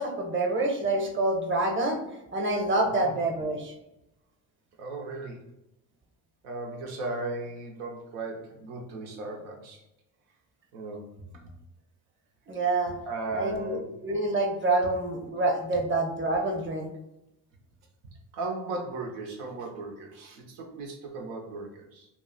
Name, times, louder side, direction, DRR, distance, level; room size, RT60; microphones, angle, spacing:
voice 1, 0.0-2.0 2.3-3.7 12.5-12.9 13.3-16.9, right 2 dB, 25° right, 2 dB, 0.8 m, -27 dB
voice 2, 4.8-5.4 6.4-9.8 10.7-11.0 11.3-11.4 13.1-13.9 18.3-22.1, right 3 dB, 85° right, 1 dB, 0.7 m, -36 dB
2.4 x 2.0 x 3.7 m, 0.89 s
hypercardioid pair, 55°, 46 cm